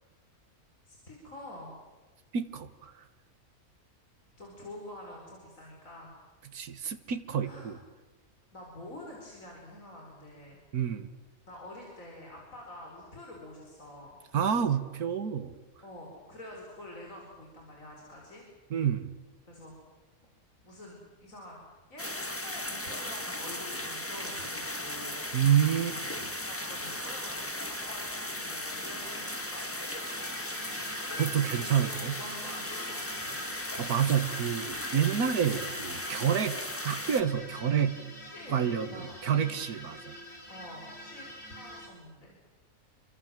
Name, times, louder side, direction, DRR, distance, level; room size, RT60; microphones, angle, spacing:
voice 1, 0.9-1.7 4.4-6.2 7.4-7.7 8.5-10.6 11.5-14.2 15.8-18.4 19.5-19.7 20.6-21.6 21.9-25.2 26.1-30.0 30.9-31.3 31.6-33.5 38.3-39.3 40.5-42.4, left 1 dB, 60° left, -1 dB, 5.3 m, -47 dB
voice 2, 2.3-3.0 6.5-7.8 10.7-11.1 14.3-15.6 18.7-19.1 25.3-26.0 31.2-32.1 33.8-36.6 36.8-37.9 38.5-40.1, right 8 dB, 90° right, 10 dB, 1.9 m, -28 dB
sound 1, 22.0-37.2, left 1 dB, 10° left, 1.5 m, -37 dB
sound 2, 25.9-26.4 27.3-41.9, equal, 45° left, 5.9 m, -45 dB
29.0 x 24.0 x 7.6 m, 1.3 s
omnidirectional pair, 1.6 m